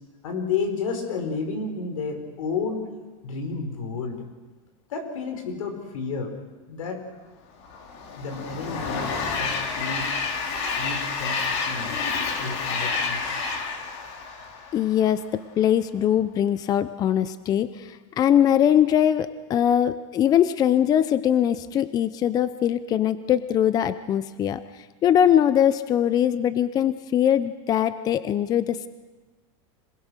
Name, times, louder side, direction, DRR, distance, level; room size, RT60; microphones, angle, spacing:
voice 1, 0.2-2.9 3.2-4.2 4.9-6.3 6.7-7.0 8.2-10.1 10.8-11.4 11.6-12.0 12.4-13.5, left 4 dB, 85° left, 6 dB, 5.1 m, -31 dB
Train, 7.6-15.1, left 4 dB, 55° left, 2.6 m, -29 dB
voice 2, 14.7-24.6 25.0-28.9, left 10 dB, 25° left, 14 dB, 0.6 m, -22 dB
26.5 x 20.5 x 6.6 m, 1.3 s
supercardioid pair, 155°, 17 cm